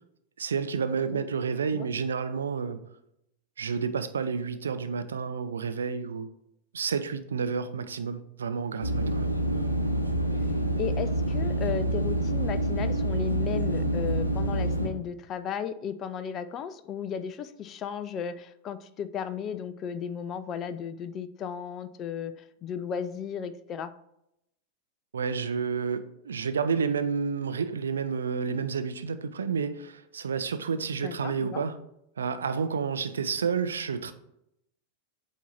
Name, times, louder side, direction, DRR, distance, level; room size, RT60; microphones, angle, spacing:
voice 1, 0.4-2.8 3.6-6.3 6.7-9.3 25.1-31.8 32.2-34.1, right 6 dB, 70° right, 0.5 m, -30 dB
sound 1, 8.8-14.9, right 1 dB, 90° left, 0.7 m, -27 dB
voice 2, 10.8-22.3 22.6-23.9 31.0-31.6, left 8 dB, 30° left, 0.4 m, -35 dB
8.1 x 2.7 x 4.4 m
figure-of-eight pair, 90°, 0 cm